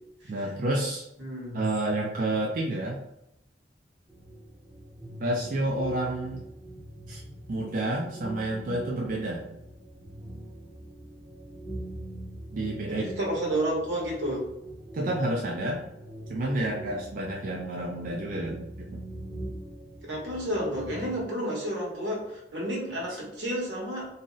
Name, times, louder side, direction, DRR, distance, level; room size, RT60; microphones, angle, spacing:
voice 1, 0.3-1.0 1.5-3.0 5.2-6.4 7.1-7.2 7.5-9.5 12.5-13.1 14.9-15.8 16.3-19.0, right 1 dB, 50° right, -2 dB, 0.4 m, -30 dB
voice 2, 1.2-1.6 12.9-14.5 20.0-24.1, right 1 dB, 85° right, -3 dB, 1.1 m, -31 dB
sound 1, 4.1-21.2, right 1 dB, 10° right, 0.6 m, -42 dB
2.7 x 2.0 x 3.7 m, 0.81 s
head